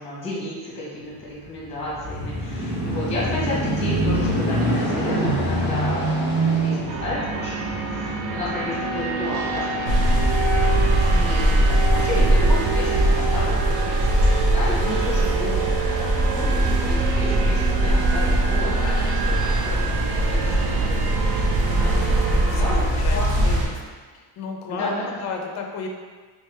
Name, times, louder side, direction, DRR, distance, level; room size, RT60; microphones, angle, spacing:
voice 1, 0.0-10.3 11.1-19.8 20.1-21.0 21.3-23.6 24.7-25.0, left 1 dB, 15° left, -6 dB, 0.9 m, -32 dB
sound 1, 1.4-10.2 10.9-11.0, right 1 dB, 25° right, 0.8 m, -25 dB
sound 2, 6.9-22.8, right 4 dB, 60° right, 0.5 m, -28 dB
sound 3, 9.9-23.7, right 1 dB, 75° right, 0.9 m, -21 dB
voice 2, 21.7-22.7 23.0-23.8 24.1-25.9, left 4 dB, 40° left, 2 dB, 0.4 m, -34 dB
3.1 x 3.1 x 3.2 m, 1.5 s
cardioid pair, 165°, 47 cm